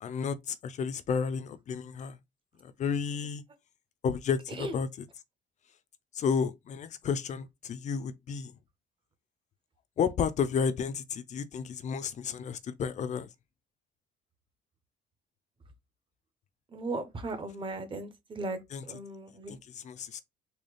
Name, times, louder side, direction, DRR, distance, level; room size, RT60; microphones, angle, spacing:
voice 1, 0.0-2.2 2.6-3.4 4.0-5.1 6.1-8.5 10.0-13.3 18.7-18.8 19.5-20.2, left 6 dB, 45° left, 0.5 m, -32 dB
voice 2, 16.7-18.6 18.9-19.6, right 2 dB, 30° right, 1.1 m, -37 dB
4.0 x 2.3 x 3.3 m
cardioid pair, 110°, 17 cm